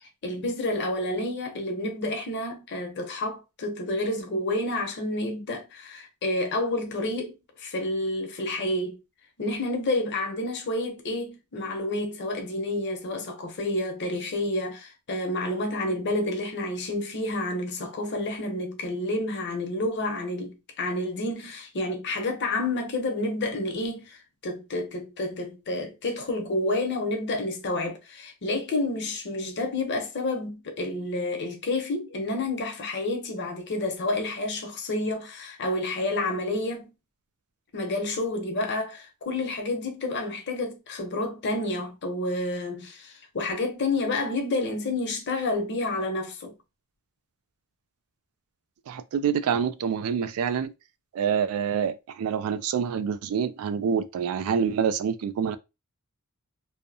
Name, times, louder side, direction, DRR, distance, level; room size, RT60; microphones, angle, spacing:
voice 1, 0.2-9.0 9.4-36.9 37.7-46.5, left 2 dB, 55° left, 0.7 m, -29 dB
voice 2, 48.9-50.7 51.1-55.6, right 7 dB, 70° right, 0.3 m, -26 dB
2.6 x 2.0 x 2.6 m
head